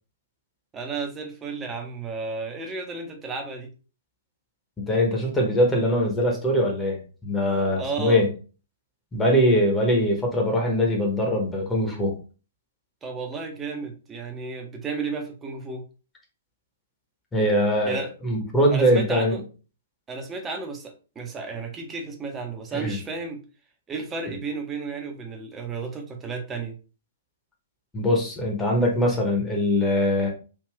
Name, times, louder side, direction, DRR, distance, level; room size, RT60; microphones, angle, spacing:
voice 1, 0.7-3.7 7.8-8.2 13.0-15.8 17.8-18.1 18.7-19.4 20.1-23.4 23.9-26.8, right 4 dB, 15° right, 3 dB, 0.7 m, -33 dB
voice 2, 4.8-8.3 9.1-12.2 17.3-19.4 22.7-23.0 27.9-30.3, equal, 10° left, 0 dB, 0.9 m, -22 dB
3.5 x 2.4 x 3.3 m, 0.35 s
figure-of-eight pair, 115°, 0 cm